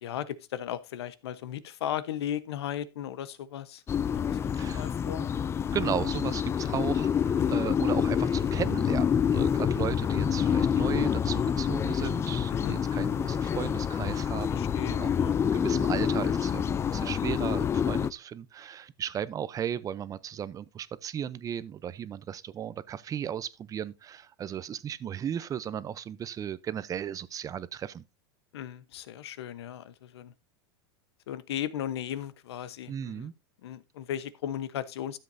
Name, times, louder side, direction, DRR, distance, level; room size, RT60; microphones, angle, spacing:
voice 1, 0.0-3.8 4.1-5.3 6.7-6.8 7.4-7.6 12.5-12.8 14.5-15.4 15.6-15.8 28.5-30.3 31.3-33.3 33.6-35.2, left 10 dB, 85° left, 1.0 m, -36 dB
sound 1, 3.9-18.1, left 8 dB, 20° left, 0.4 m, -27 dB
voice 2, 4.6-4.9 5.7-15.1 15.4-28.0 32.9-33.3, right 9 dB, 25° right, 0.6 m, -35 dB
13.0 x 7.7 x 2.7 m
supercardioid pair, 125°, 13 cm